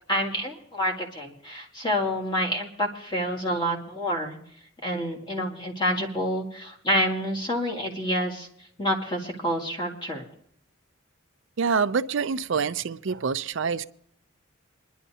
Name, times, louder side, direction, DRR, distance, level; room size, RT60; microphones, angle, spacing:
voice 1, 0.1-4.4 4.8-8.5 8.8-10.3, equal, 20° left, 1.8 m, -28 dB
voice 2, 11.6-13.8, right 5 dB, 60° right, 0.5 m, -26 dB
26.0 x 11.0 x 2.8 m
head